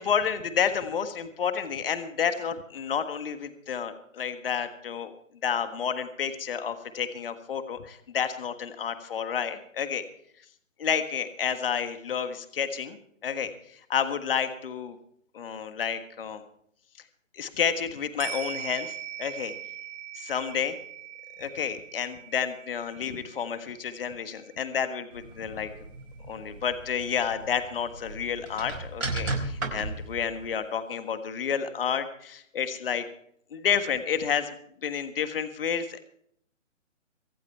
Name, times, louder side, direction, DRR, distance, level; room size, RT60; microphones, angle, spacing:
voice 1, 0.0-5.1 5.4-10.0 10.8-13.0 13.2-15.0 15.3-16.4 17.3-19.5 20.1-20.7 21.4-25.7 26.3-33.0 33.5-34.5 34.8-36.0, left 7 dB, 45° left, 9 dB, 1.5 m, -30 dB
sound 1, 18.2-26.8 27.1-27.2, right 10 dB, 15° right, 2.6 m, -42 dB
sound 2, 25.1-30.5, right 2 dB, 90° right, 4.7 m, -36 dB
24.0 x 8.4 x 4.6 m, 0.67 s
hypercardioid pair, 155°, 38 cm